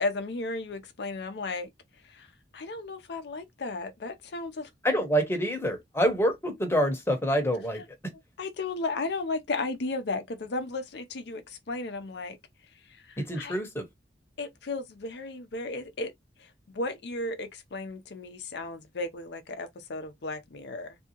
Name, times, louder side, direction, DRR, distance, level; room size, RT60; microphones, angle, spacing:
voice 1, 0.0-1.7 2.1-2.3 2.5-4.7 8.4-12.4 12.9-13.6 14.4-16.1 16.4-21.0, left 3 dB, 65° left, 0.6 m, -34 dB
voice 2, 4.8-8.0 13.2-13.9, equal, 15° left, 0.9 m, -26 dB
3.5 x 2.7 x 2.8 m
head